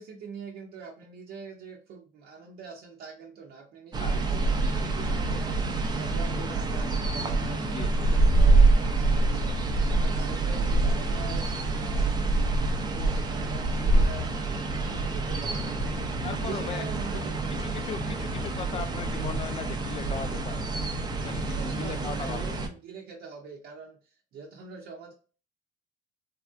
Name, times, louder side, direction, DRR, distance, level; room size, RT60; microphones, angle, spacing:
voice 1, 0.0-12.4 12.6-14.5 14.9-16.1 16.4-17.4 21.2-25.1, right 5 dB, 65° right, 0.6 m, -44 dB
sound 1, 3.9-22.7, right 2 dB, 25° right, 0.5 m, -26 dB
voice 2, 4.0-4.3 7.7-8.1 16.2-20.6 21.2-22.6, left 6 dB, 35° left, 0.5 m, -38 dB
3.4 x 2.3 x 2.5 m
cardioid pair, 110°, 17 cm